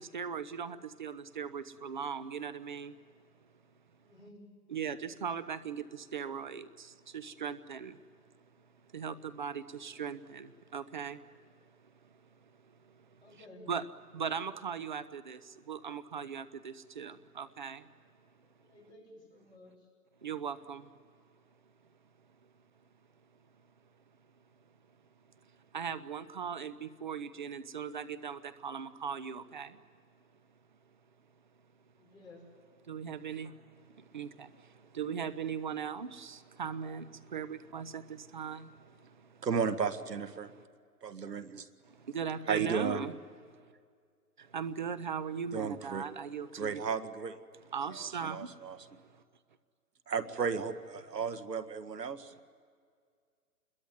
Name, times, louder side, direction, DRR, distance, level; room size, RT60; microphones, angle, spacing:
voice 1, 0.1-2.9 4.7-5.8 6.1-6.7 7.1-7.9 8.9-10.5 10.7-11.2 13.7-13.8 14.1-15.4 15.7-17.8 20.2-20.8 25.7-29.7 32.9-33.5 34.1-34.5 35.0-37.0 37.3-38.0 38.3-38.6 42.1-43.1 44.5-46.8 47.7-48.5, right 7 dB, 30° right, 14 dB, 0.7 m, -38 dB
voice 2, 4.0-4.5 13.2-13.7 18.4-19.9 32.0-32.4, left 2 dB, 10° left, -4 dB, 4.8 m, -54 dB
voice 3, 39.4-40.5 41.0-41.7 42.5-43.0 45.5-46.0 46.6-47.4 48.0-48.8 50.1-52.3, right 6 dB, 85° right, 11 dB, 1.9 m, -34 dB
27.0 x 22.0 x 9.4 m, 2.1 s
hypercardioid pair, 165°, 47 cm